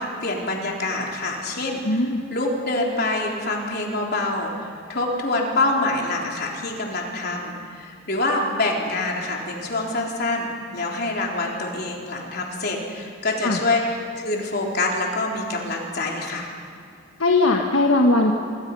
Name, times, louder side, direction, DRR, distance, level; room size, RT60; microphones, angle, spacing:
voice 1, 0.0-2.0 2.3-16.5, left 2 dB, 50° left, -1 dB, 4.0 m, -26 dB
voice 2, 1.8-2.2 13.4-13.6 17.2-18.3, left 2 dB, 75° left, 1 dB, 1.6 m, -19 dB
26.0 x 24.0 x 5.6 m, 2.5 s
head